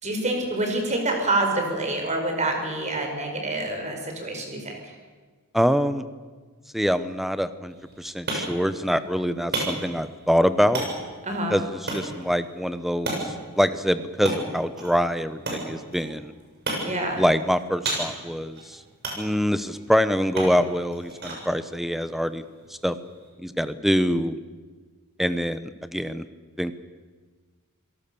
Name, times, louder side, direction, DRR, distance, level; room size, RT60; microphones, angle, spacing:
voice 1, 0.0-4.9 11.2-11.6 16.8-17.2, right 2 dB, 30° right, 3 dB, 5.0 m, -27 dB
voice 2, 5.5-6.1 6.7-10.8 11.5-16.3 17.2-18.8 19.2-22.4 22.8-23.0 23.4-24.4 25.2-26.2 26.6-26.7, equal, ahead, 12 dB, 0.9 m, -25 dB
sound 1, 7.7-23.3, right 2 dB, 50° right, 6.9 m, -35 dB
27.5 x 18.0 x 6.9 m, 1.4 s
head